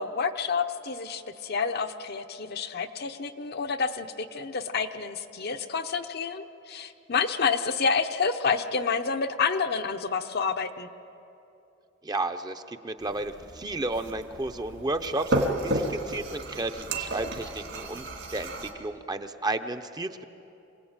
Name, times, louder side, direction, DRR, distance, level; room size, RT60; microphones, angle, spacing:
voice 1, 0.0-10.9, left 5 dB, 55° left, 7 dB, 0.9 m, -29 dB
voice 2, 12.0-15.3 15.6-20.2, right 2 dB, 20° right, 8 dB, 0.8 m, -33 dB
sound 1, 13.0-18.7, right 1 dB, 65° right, 2.7 m, -32 dB
26.0 x 17.5 x 8.9 m, 2.9 s
head